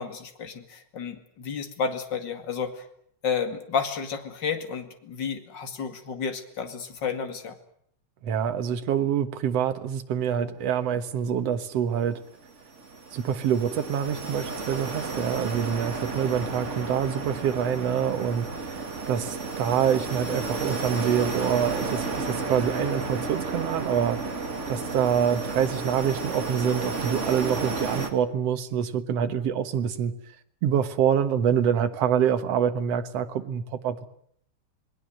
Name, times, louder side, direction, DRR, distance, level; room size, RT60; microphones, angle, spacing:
voice 1, 0.0-2.8 3.2-7.6, left 6 dB, 35° left, 2.6 m, -31 dB
voice 2, 8.2-12.2 13.1-24.3 24.7-30.1 30.6-34.1, right 8 dB, 60° right, 2.2 m, -26 dB
sound 1, 12.4-28.1, right 3 dB, 25° right, 2.1 m, -32 dB
28.0 x 20.0 x 7.8 m
omnidirectional pair, 3.7 m